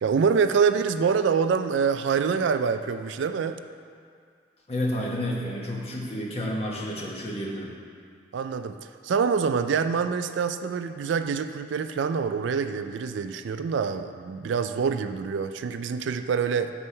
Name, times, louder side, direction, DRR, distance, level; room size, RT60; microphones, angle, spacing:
voice 1, 0.0-3.6 8.3-8.8 9.0-16.7, right 6 dB, 75° right, 10 dB, 0.3 m, -25 dB
voice 2, 4.7-7.7, left 1 dB, 30° left, -2 dB, 1.0 m, -30 dB
8.1 x 4.2 x 5.5 m, 2.2 s
head